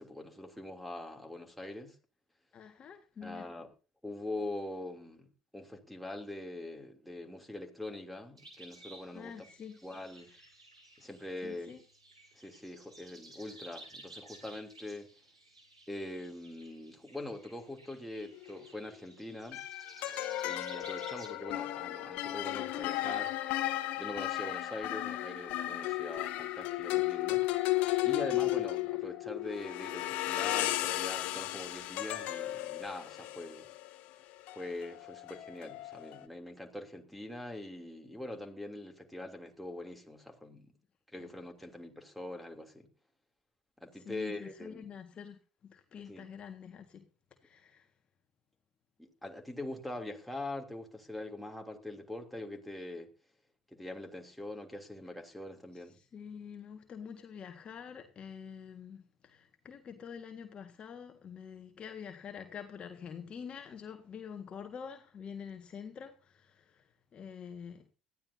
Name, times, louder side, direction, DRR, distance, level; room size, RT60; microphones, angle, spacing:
voice 1, 0.0-2.0 3.2-3.7 4.0-9.5 9.8-10.3 11.0-11.7 12.3-15.1 15.9-19.6 20.4-23.3 24.0-27.5 28.0-33.7 34.5-40.7 41.1-42.9 43.8-44.9 46.1-46.3 49.0-53.1 53.7-56.0, left 1 dB, ahead, 3.1 m, -43 dB
voice 2, 2.5-3.5 9.1-9.8 11.4-11.8 41.2-41.3 43.9-47.0 47.4-47.9 56.0-67.9, left 7 dB, 35° left, 1.8 m, -46 dB
sound 1, 8.4-21.3, right 2 dB, 85° right, 3.5 m, -55 dB
sound 2, 18.4-18.6 19.5-36.2, left 16 dB, 55° left, 1.1 m, -34 dB
19.5 x 14.0 x 2.8 m
figure-of-eight pair, 60°, 3 cm